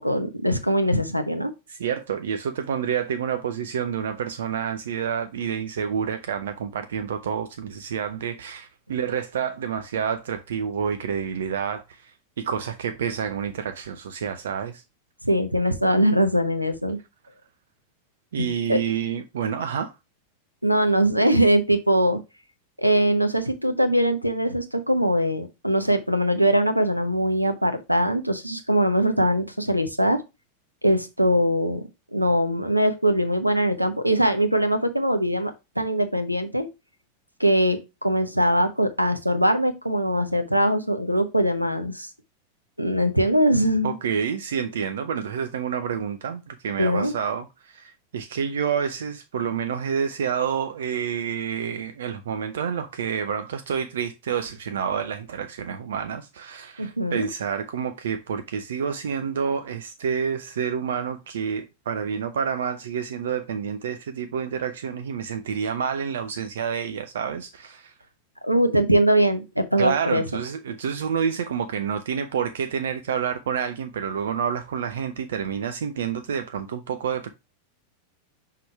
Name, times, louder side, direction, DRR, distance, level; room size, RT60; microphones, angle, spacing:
voice 1, 0.0-1.5 15.2-17.0 18.4-18.8 20.6-22.2 22.8-30.2 30.8-31.8 32.1-35.5 35.8-36.7 37.4-42.1 42.8-44.0 46.8-47.1 56.8-57.3 68.4-70.2, equal, 90° right, 0.9 m, -22 dB
voice 2, 1.7-14.8 18.3-19.9 43.8-67.9 69.8-77.3, right 7 dB, 60° right, 0.5 m, -28 dB
5.9 x 3.7 x 4.6 m
figure-of-eight pair, 90°, 0 cm